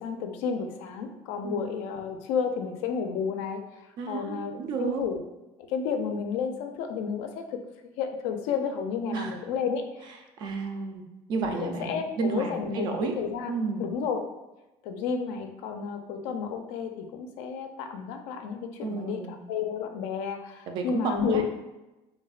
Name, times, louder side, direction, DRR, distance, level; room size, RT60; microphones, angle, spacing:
voice 1, 0.0-3.6 4.1-4.5 4.8-5.2 5.7-7.6 8.0-10.1 11.4-12.9 13.2-13.5 13.8-14.2 14.8-21.4, left 6 dB, 90° left, 5 dB, 0.4 m, -31 dB
voice 2, 4.0-5.0 9.1-9.4 10.4-11.0 11.3-13.1 13.5-13.9 18.8-19.4 20.7-21.4, right 4 dB, 40° right, 4 dB, 0.3 m, -31 dB
3.3 x 2.1 x 2.3 m, 1.0 s
cardioid pair, 170°, 11 cm